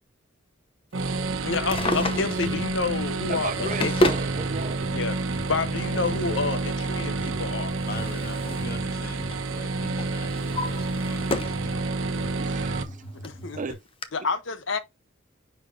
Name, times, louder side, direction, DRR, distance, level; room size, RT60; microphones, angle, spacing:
sound 1, 0.9-12.8, right 3 dB, 80° right, 1.1 m, -29 dB
voice 1, 1.4-3.9 4.9-5.2 5.5-7.8 13.2-13.6 14.1-14.8, left 4 dB, 65° left, 0.9 m, -29 dB
Drawer open or close, 1.5-2.6 3.3-4.3 5.4-5.5 7.2-8.8 9.1-9.5 10.0-11.6 12.1-12.2 12.9-13.0 13.2-13.3 14.0-14.1, left 1 dB, 30° left, 0.8 m, -29 dB
sound 2, 1.7-13.7, right 1 dB, 5° right, 4.1 m, -42 dB
voice 2, 3.3-5.2 12.4-13.0 13.5-13.8 14.2-14.3, right 4 dB, 40° right, 0.5 m, -35 dB
voice 3, 7.8-12.7, left 2 dB, 50° left, 1.5 m, -43 dB
9.9 x 4.5 x 2.6 m
head